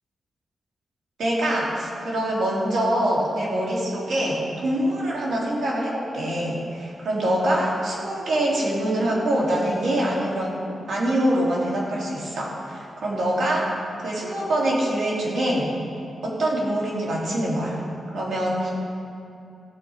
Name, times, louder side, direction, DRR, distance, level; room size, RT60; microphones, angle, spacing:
voice 1, 1.2-10.6 10.9-15.7 16.2-17.8 18.1-18.7, right 1 dB, 85° right, -4 dB, 2.9 m, -24 dB
16.5 x 7.4 x 4.6 m, 2.6 s
wide cardioid pair, 135°, 0 cm